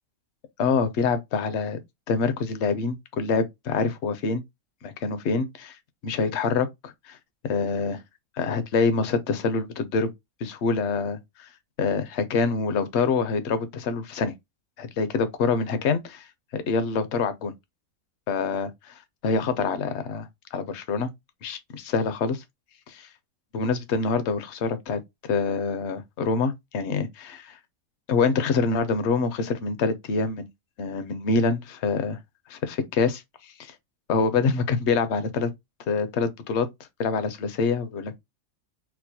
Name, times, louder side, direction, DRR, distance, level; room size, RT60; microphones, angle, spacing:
voice 1, 0.6-1.8 2.1-4.4 4.8-5.8 6.0-7.2 7.4-8.0 8.4-10.1 10.4-11.5 11.8-14.3 14.8-16.3 16.5-17.5 18.3-21.1 21.4-22.4 22.9-23.1 23.5-27.6 28.1-30.5 30.8-32.2 32.5-33.7 34.1-35.5 35.9-36.7 37.0-38.2, left 4 dB, 65° left, 0.8 m, -26 dB
4.4 x 2.1 x 2.7 m
omnidirectional pair, 1.5 m